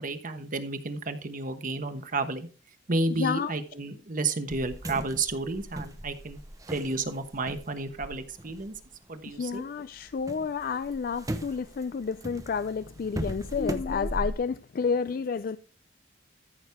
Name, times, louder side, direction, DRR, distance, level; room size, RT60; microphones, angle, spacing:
voice 1, 0.0-2.5 2.9-6.4 6.7-8.7 9.1-9.6, right 3 dB, 45° right, 1.1 m, -31 dB
voice 2, 3.1-3.5 9.3-15.6, left 5 dB, 50° left, 0.3 m, -30 dB
sound 1, 4.5-9.6 10.0-14.3, right 1 dB, 20° right, 0.9 m, -38 dB
14.0 x 6.2 x 3.5 m
head